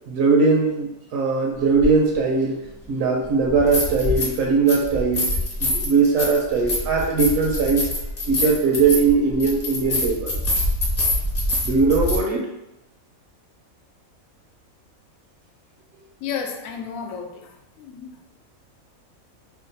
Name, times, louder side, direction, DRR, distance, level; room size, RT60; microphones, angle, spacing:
voice 1, 0.1-2.6 2.9-5.3 5.6-7.9 8.3-10.4 11.6-12.5, right 4 dB, 75° right, 0 dB, 0.9 m, -20 dB
sound 1, 1.8-1.9 3.4-4.4 4.7-12.2, left 1 dB, 35° left, 0.8 m, -25 dB
voice 2, 16.2-18.2, left 6 dB, 75° left, 3 dB, 1.0 m, -33 dB
2.9 x 2.3 x 3.9 m, 0.90 s
omnidirectional pair, 1.5 m